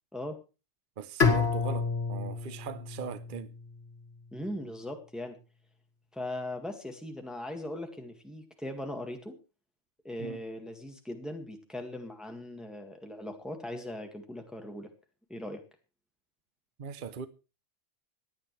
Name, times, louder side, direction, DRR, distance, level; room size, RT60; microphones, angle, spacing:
voice 1, 1.0-3.5 10.2-10.4 16.8-17.3, right 6 dB, 50° right, 0.9 m, -40 dB
Bowed string instrument, 1.2-4.2, left 4 dB, 65° left, 2.3 m, -29 dB
voice 2, 4.3-5.4 6.1-9.4 10.0-14.9 15.3-15.6, left 1 dB, ahead, 1.9 m, -39 dB
26.0 x 9.6 x 3.3 m
omnidirectional pair, 1.2 m